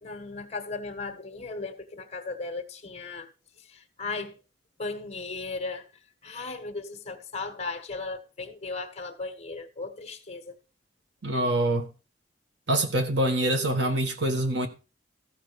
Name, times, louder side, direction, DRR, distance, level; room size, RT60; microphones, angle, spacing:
voice 1, 0.0-3.3 3.7-4.4 4.8-5.8 6.2-10.5, left 3 dB, 35° left, 1.4 m, -36 dB
voice 2, 11.2-11.9 12.7-14.7, right 1 dB, 70° right, 1.5 m, -25 dB
14.5 x 5.3 x 5.1 m
head